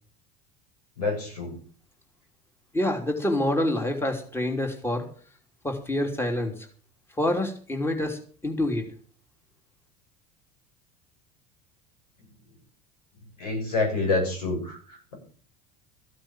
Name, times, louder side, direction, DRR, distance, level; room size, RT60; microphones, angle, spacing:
voice 1, 1.0-1.5 13.4-14.8, left 3 dB, 85° left, 2 dB, 7.0 m, -26 dB
voice 2, 2.7-5.0 5.6-6.7 7.2-8.9, left 1 dB, 10° left, 4 dB, 3.2 m, -27 dB
14.5 x 8.8 x 7.6 m, 0.43 s
hypercardioid pair, 75°, 20 cm